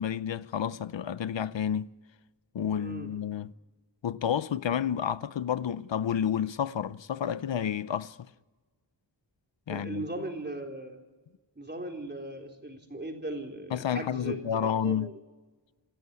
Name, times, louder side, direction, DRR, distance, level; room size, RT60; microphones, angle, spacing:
voice 1, 0.0-1.9 2.5-3.5 4.0-8.2 9.7-10.0 13.7-15.1, left 8 dB, 80° left, 0.7 m, -30 dB
voice 2, 2.8-3.2 9.7-11.0 11.6-15.2, right 1 dB, 25° right, 3.9 m, -38 dB
29.0 x 13.5 x 9.6 m
wide cardioid pair, 95°, 44 cm